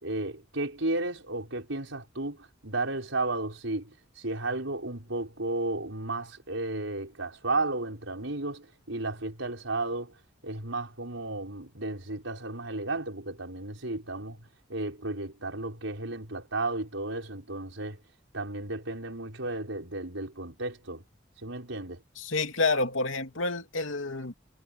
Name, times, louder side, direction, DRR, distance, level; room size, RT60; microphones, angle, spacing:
voice 1, 0.0-18.0 18.3-21.0 21.4-22.0, right 2 dB, 80° right, 6.0 m, -33 dB
voice 2, 22.2-24.3, left 3 dB, 90° left, 2.8 m, -29 dB
head